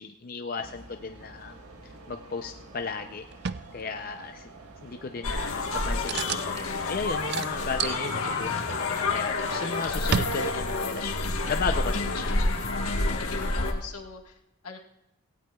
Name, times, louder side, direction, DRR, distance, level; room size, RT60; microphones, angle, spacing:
voice 1, 0.0-1.5 1.8-3.2 3.7-4.5 4.8-12.5, left 5 dB, 40° left, 5 dB, 0.5 m, -35 dB
sound 1, 0.6-7.6, right 2 dB, 80° right, 1.5 m, -48 dB
sound 2, 3.3-3.7 6.1-6.7 7.3-8.6 9.2-10.9 11.6-12.7 13.8-13.9, right 7 dB, 45° right, 0.3 m, -34 dB
sound 3, 5.2-13.7, left 3 dB, 70° left, 1.4 m, -29 dB
voice 2, 13.3-14.8, left 5 dB, 85° left, 2 dB, 1.6 m, -43 dB
18.0 x 16.5 x 2.3 m, 0.88 s
head